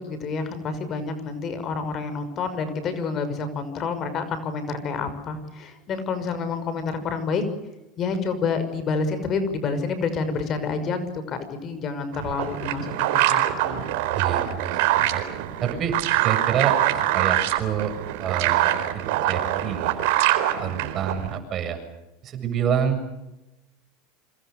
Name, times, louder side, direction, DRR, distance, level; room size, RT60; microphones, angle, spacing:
voice 1, 0.0-7.4 8.0-13.9, left 4 dB, 40° left, 11 dB, 6.0 m, -28 dB
sound 1, 12.1-21.4, right 14 dB, 70° right, 4.3 m, -24 dB
voice 2, 14.1-15.2 15.6-16.0 16.2-17.9 18.2-20.0 20.6-21.8 22.2-23.0, right 8 dB, 40° right, 7 dB, 7.4 m, -27 dB
28.0 x 26.5 x 6.8 m, 0.92 s
supercardioid pair, 115°, 0 cm